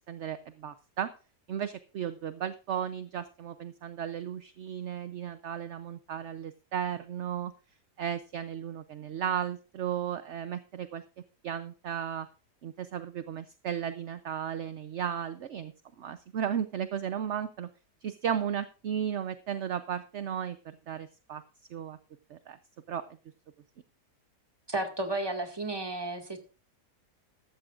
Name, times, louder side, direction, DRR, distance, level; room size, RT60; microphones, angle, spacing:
voice 1, 0.1-1.1 1.5-7.5 8.0-11.0 11.4-12.3 12.6-15.7 16.0-17.7 18.0-21.4 21.7-22.0 22.3-22.6 22.9-23.1, right 9 dB, 60° right, 11 dB, 0.8 m, -35 dB
voice 2, 24.7-26.4, right 2 dB, 15° right, 4 dB, 1.9 m, -33 dB
15.0 x 12.5 x 2.5 m, 0.34 s
omnidirectional pair, 1.8 m